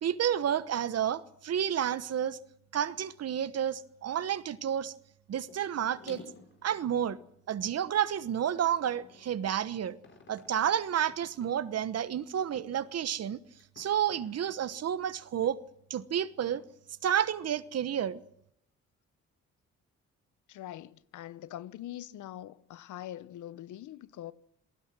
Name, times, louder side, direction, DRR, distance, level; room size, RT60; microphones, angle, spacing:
voice 1, 0.0-2.4 2.7-4.9 5.3-6.2 6.6-7.2 7.5-10.0 10.3-13.4 13.8-15.6 15.9-16.6 17.0-18.2, right 9 dB, 55° right, 1.1 m, -30 dB
sound 1, 5.5-5.6 6.0-7.9 8.6-9.4 10.0-10.7 11.1-11.5 12.1-12.2 12.6-13.0 13.6-14.5 15.4-15.5 16.5-16.6, left 4 dB, 40° left, 5.4 m, -53 dB
voice 2, 20.5-24.3, left 12 dB, 75° left, 1.0 m, -43 dB
27.5 x 19.0 x 6.2 m
cardioid pair, 90°, 30 cm